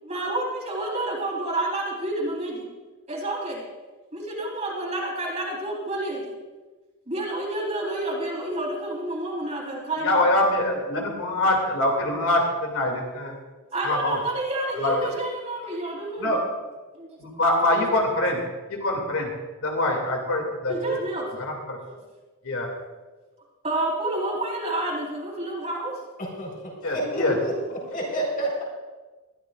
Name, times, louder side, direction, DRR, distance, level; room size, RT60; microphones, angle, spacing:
voice 1, 0.0-2.6 3.1-3.6 4.1-6.3 7.1-10.2 13.7-16.4 16.9-17.2 20.7-21.3 21.8-22.0 23.6-26.0, right 1 dB, 30° right, -3 dB, 3.9 m, -29 dB
voice 2, 10.0-13.3 13.8-14.2 14.8-15.1 16.2-16.4 17.2-18.4 18.8-19.3 19.6-20.7 21.4-21.8 22.4-22.7 26.8-27.4, left 1 dB, 70° left, 1 dB, 2.6 m, -24 dB
voice 3, 26.2-27.0 27.4-27.5 27.9-28.6, right 1 dB, 40° left, -2 dB, 4.4 m, -30 dB
21.5 x 13.0 x 2.5 m, 1.2 s
head